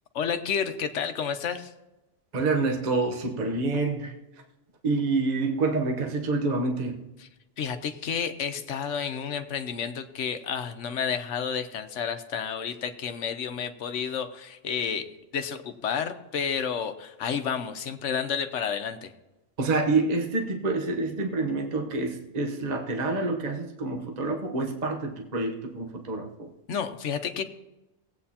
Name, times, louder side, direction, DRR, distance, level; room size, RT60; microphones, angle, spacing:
voice 1, 0.1-1.7 7.2-7.3 7.6-19.1 26.7-27.4, left 7 dB, 70° left, 8 dB, 1.1 m, -31 dB
voice 2, 2.3-4.2 4.8-7.0 19.6-26.5, right 3 dB, 35° right, 2 dB, 1.0 m, -27 dB
18.5 x 8.5 x 2.8 m, 0.99 s
omnidirectional pair, 1.3 m